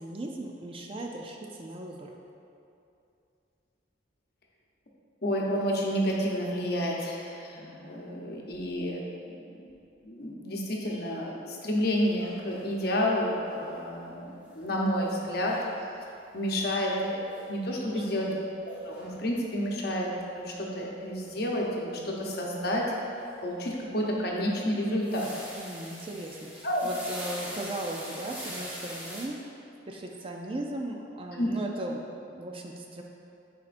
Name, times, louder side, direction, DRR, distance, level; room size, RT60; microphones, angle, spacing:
voice 1, 0.0-2.1 17.9-18.4 25.5-29.4 29.9-33.0, right 1 dB, 30° right, 1 dB, 0.4 m, -37 dB
voice 2, 5.2-9.1 9.4-9.7 10.0-14.3 14.5-15.6 16.3-18.3 18.8-22.8 23.4-25.3 26.6-26.9 31.4-31.5, equal, 55° left, -2 dB, 0.9 m, -30 dB
sound 1, 12.0-29.2, equal, 10° right, 1.0 m, -45 dB
9.7 x 4.2 x 2.5 m, 2.7 s
head